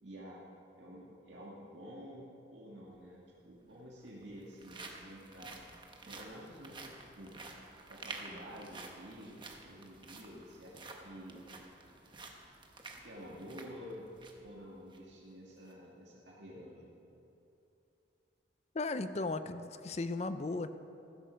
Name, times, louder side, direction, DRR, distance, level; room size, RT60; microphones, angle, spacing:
voice 1, 0.0-0.4 0.8-5.6 6.0-7.3 7.9-11.4 13.0-14.1 14.4-16.9, equal, 75° right, -5 dB, 1.9 m, -50 dB
sound 1, 2.9-3.0 3.9-14.5 14.9-15.0 15.5-15.7, right 3 dB, 25° right, 1.1 m, -50 dB
voice 2, 18.7-20.7, left 3 dB, 35° left, 11 dB, 0.5 m, -36 dB
14.5 x 13.0 x 5.2 m, 2.9 s
head